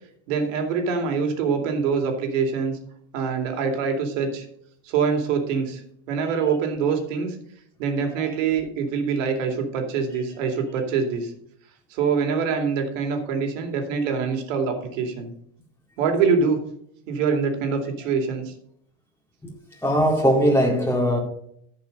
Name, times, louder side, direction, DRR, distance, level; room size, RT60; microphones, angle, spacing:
voice 1, 0.3-2.8 3.1-4.5 4.8-5.8 6.1-7.4 7.8-11.3 11.9-15.3 16.0-16.6 17.1-18.5, right 5 dB, 80° right, 2.6 m, -24 dB
voice 2, 19.8-21.2, equal, 5° left, 4.0 m, -20 dB
14.5 x 5.4 x 5.3 m
supercardioid pair, 130°, 37 cm